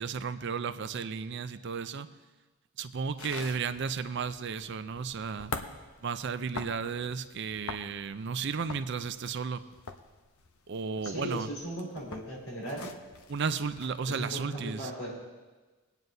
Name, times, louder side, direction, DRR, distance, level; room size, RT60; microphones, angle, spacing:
voice 1, 0.0-2.1 2.8-5.5 6.0-9.6 10.7-11.5 13.3-14.9, right 5 dB, 55° right, 12 dB, 0.4 m, -34 dB
sound 1, 3.2-13.9, left 4 dB, 80° left, 0.8 m, -45 dB
voice 2, 11.0-12.9 14.0-15.1, equal, 65° left, -4 dB, 4.6 m, -37 dB
22.5 x 9.3 x 2.7 m, 1.2 s
head